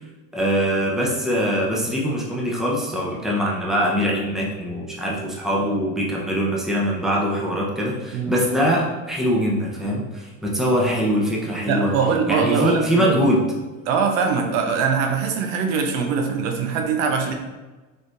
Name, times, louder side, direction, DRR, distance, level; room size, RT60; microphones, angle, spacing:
voice 1, 0.3-11.9 12.3-13.4, equal, ahead, -3 dB, 0.7 m, -22 dB
voice 2, 8.1-8.5 11.7-13.3 13.9-17.3, right 5 dB, 70° right, 4 dB, 0.7 m, -22 dB
3.9 x 3.3 x 2.5 m, 1.2 s
hypercardioid pair, 95°, 40 cm